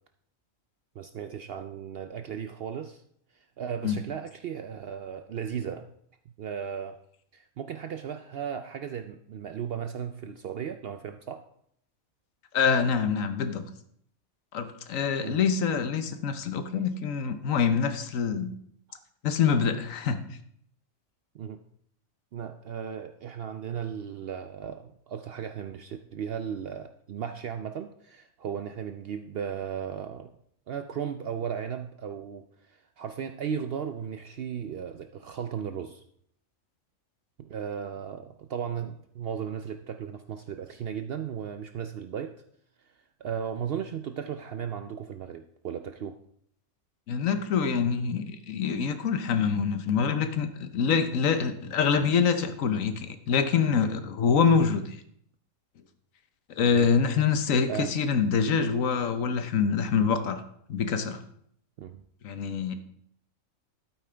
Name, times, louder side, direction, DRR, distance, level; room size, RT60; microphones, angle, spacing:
voice 1, 1.0-3.0 3.3-5.9 6.4-7.0 7.3-11.4 15.2-15.4 18.9-19.0 21.3-21.6 22.3-30.3 30.7-36.0 37.4-42.3 42.8-42.9 43.2-46.2 56.7-56.9 57.7-57.9 61.8-62.0, right 8 dB, 65° right, 7 dB, 0.6 m, -36 dB
voice 2, 12.5-13.6 14.5-18.5 19.2-20.2 47.1-55.0 56.5-60.4 60.7-61.2 62.2-62.8, left 6 dB, 75° left, 9 dB, 1.2 m, -25 dB
12.0 x 8.8 x 3.4 m, 0.69 s
omnidirectional pair, 1.4 m